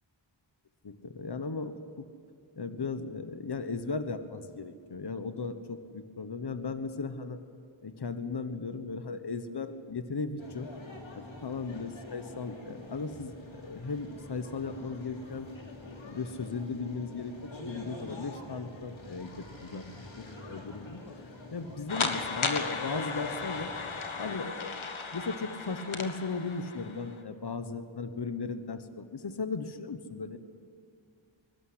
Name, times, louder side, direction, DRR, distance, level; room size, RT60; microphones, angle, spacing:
voice 1, 0.8-2.1 2.6-7.4 7.8-10.7 11.1-15.5 16.0-19.9 20.2-23.7 24.1-24.8 25.1-30.4, left 4 dB, 55° left, 9 dB, 1.3 m, -37 dB
sound 1, 10.4-24.0, left 2 dB, 75° left, 3.1 m, -46 dB
sound 2, 21.9-27.1, left 4 dB, 90° left, 1.6 m, -35 dB
22.5 x 12.5 x 9.8 m, 2.4 s
cardioid pair, 40°, 47 cm